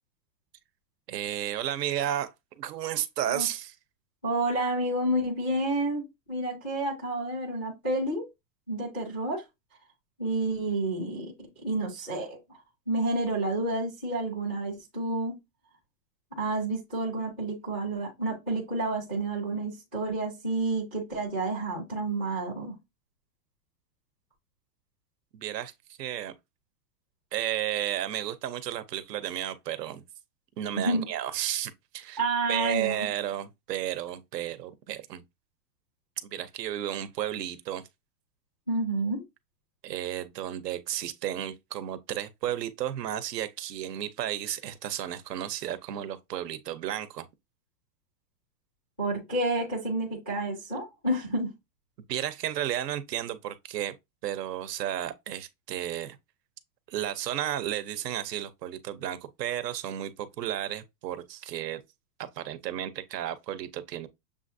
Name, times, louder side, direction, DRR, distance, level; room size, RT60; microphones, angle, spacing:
voice 1, 1.1-3.8 25.3-26.3 27.3-30.0 30.6-32.2 32.5-35.2 36.2-37.8 39.8-47.3 52.1-53.9 54.2-56.2 56.9-61.8 62.2-64.1, right 11 dB, 85° right, 0.9 m, -33 dB
voice 2, 4.2-8.3 8.7-9.4 10.2-12.4 12.9-15.4 16.4-22.8 30.8-31.1 32.2-33.0 38.7-39.2 49.0-51.5, right 2 dB, 10° right, 0.3 m, -29 dB
6.9 x 2.5 x 2.6 m
supercardioid pair, 170°, 47 cm